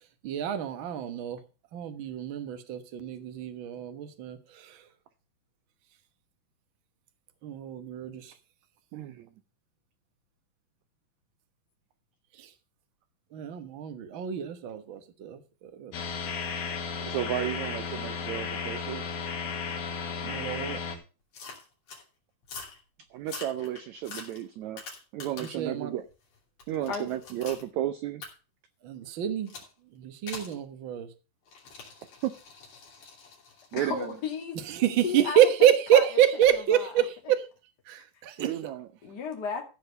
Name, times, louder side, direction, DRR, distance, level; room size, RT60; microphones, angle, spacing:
voice 1, 0.2-1.4 1.7-4.8 7.4-8.3 12.4-12.5 13.3-15.4 15.7-15.9 20.2-20.8 25.4-25.9 28.8-29.5 29.9-31.1 34.7-37.5 37.9-38.5, right 10 dB, 60° right, 1.3 m, -27 dB
voice 2, 8.9-9.3 17.0-19.1 23.1-26.1 26.7-28.2 32.2-32.3 33.7-34.1 38.4-38.9, right 12 dB, 75° right, 1.7 m, -33 dB
sound 1, 15.9-21.0, left 5 dB, 85° left, 3.7 m, -34 dB
sound 2, 21.3-22.0 22.4-22.8 23.2-25.7 26.1-27.7 28.2-28.3 29.5-29.7 30.3-30.6 31.5-35.4 36.4-36.6, left 4 dB, 65° left, 4.6 m, -45 dB
voice 3, 33.8-36.2 36.5-37.0 39.0-39.6, left 5 dB, 30° left, 2.5 m, -35 dB
14.5 x 5.0 x 6.7 m
omnidirectional pair, 4.0 m